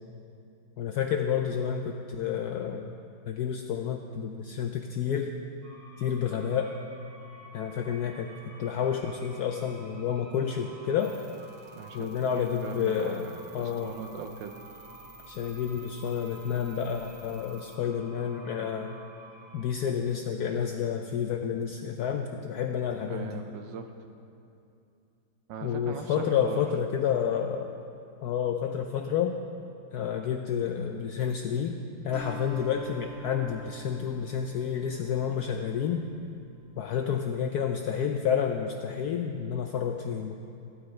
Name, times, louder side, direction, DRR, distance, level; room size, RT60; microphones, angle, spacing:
voice 1, 0.8-2.9 3.3-5.3 6.0-6.7 7.5-8.3 8.6-11.2 11.9-14.0 15.3-19.0 19.5-23.4 25.6-27.7 28.2-29.3 29.9-31.8 32.0-36.1 36.8-40.3, left 8 dB, 80° left, 4 dB, 0.9 m, -30 dB
sound 1, 5.6-19.6, equal, 20° right, 1.6 m, -51 dB
sound 2, 11.0-17.8, right 4 dB, 45° right, 0.8 m, -53 dB
voice 2, 11.7-14.5 23.1-23.9 25.5-26.6, right 6 dB, 70° right, 5 dB, 1.3 m, -40 dB
Acoustic guitar, 32.1-36.6, right 1 dB, 45° left, 1.0 m, -46 dB
13.5 x 13.0 x 3.2 m, 2.7 s
omnidirectional pair, 2.2 m